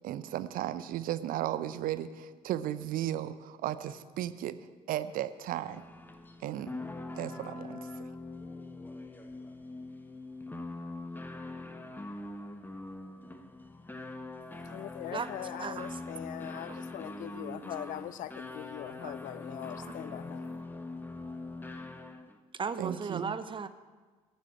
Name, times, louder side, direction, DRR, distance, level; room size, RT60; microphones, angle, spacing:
voice 1, 0.0-4.6 4.9-5.8 6.4-6.8 7.2-8.1 22.8-23.3, right 12 dB, 55° right, 0.7 m, -35 dB
sound 1, 5.6-22.4, left 2 dB, 10° left, 1.2 m, -43 dB
voice 2, 14.7-20.6, left 12 dB, 50° left, 0.5 m, -41 dB
voice 3, 22.6-23.7, right 5 dB, 30° right, 0.8 m, -35 dB
11.5 x 7.4 x 8.8 m
figure-of-eight pair, 50°, 17 cm